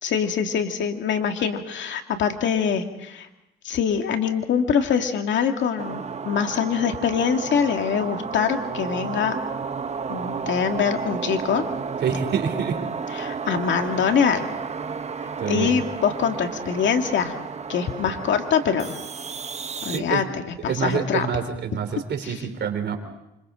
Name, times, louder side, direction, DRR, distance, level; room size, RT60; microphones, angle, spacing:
voice 1, 0.0-3.3 3.6-9.4 10.1-11.6 12.1-12.2 13.1-14.5 15.5-17.3 17.7-18.9 19.8-21.3 22.2-22.3, left 7 dB, 70° left, 5 dB, 2.2 m, -24 dB
sound 1, 5.8-20.0, right 5 dB, 35° right, 1.0 m, -32 dB
voice 2, 12.0-12.8 15.4-15.8 19.9-20.2 20.6-23.0, right 7 dB, 60° right, 6 dB, 3.5 m, -26 dB
28.5 x 26.0 x 3.8 m, 0.90 s
cardioid pair, 90°, 20 cm